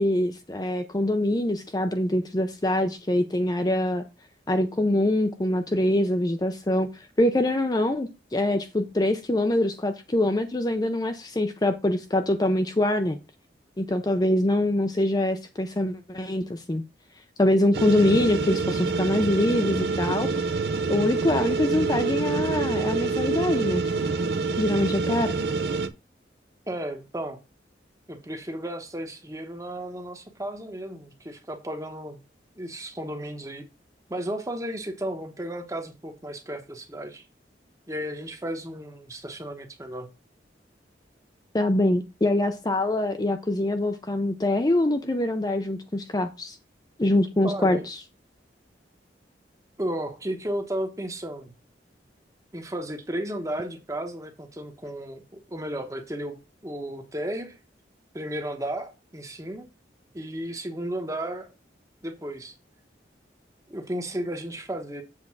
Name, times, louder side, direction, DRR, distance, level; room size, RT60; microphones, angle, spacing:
voice 1, 0.0-4.0 4.5-13.2 13.8-16.8 17.4-20.3 20.9-23.8 24.6-25.3 41.5-46.6 47.0-48.0, left 1 dB, 20° left, 0.5 m, -24 dB
sound 1, 17.7-25.9, right 4 dB, 60° right, 0.6 m, -26 dB
voice 2, 26.7-27.4 28.1-32.2 32.6-33.7 34.1-37.2 37.9-40.1 47.4-47.9 49.8-51.5 52.5-56.4 56.6-57.6 58.1-59.7 60.1-61.5 62.0-62.5 63.7-65.0, right 1 dB, 15° right, 1.0 m, -34 dB
7.6 x 3.6 x 5.9 m
head